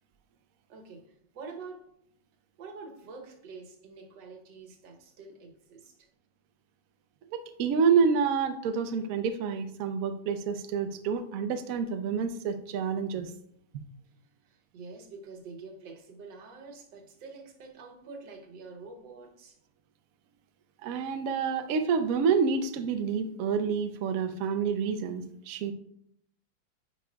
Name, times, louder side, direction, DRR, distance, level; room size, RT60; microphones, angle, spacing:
voice 1, 0.7-1.9 2.6-6.1 14.4-19.6, right 4 dB, 70° right, 3 dB, 1.5 m, -46 dB
voice 2, 7.3-13.3 20.8-25.7, right 6 dB, 85° right, 9 dB, 0.7 m, -28 dB
9.2 x 4.6 x 2.3 m, 0.71 s
omnidirectional pair, 2.1 m